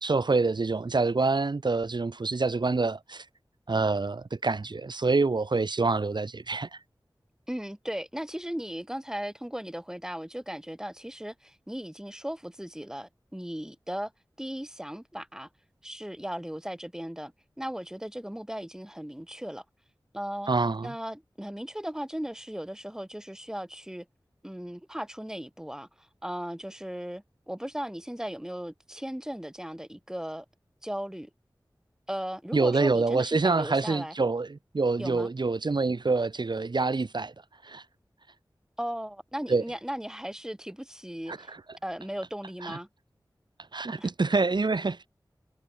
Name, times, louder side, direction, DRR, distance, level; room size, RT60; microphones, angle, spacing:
voice 1, 0.0-3.2 3.7-6.8 20.5-20.9 32.5-37.3 37.6-37.8 39.5-39.6 41.3-41.6 42.6-42.8 43.7-45.1, right 3 dB, 70° right, 1.7 m, -26 dB
voice 2, 7.5-14.1 14.4-15.5 15.8-17.3 17.6-19.6 20.1-20.5 20.8-24.1 24.4-30.4 30.8-31.3 32.1-34.1 35.0-35.3 38.8-41.5 41.8-42.9 44.0-44.1, equal, 5° right, 2.5 m, -37 dB
wide cardioid pair, 50°, 8 cm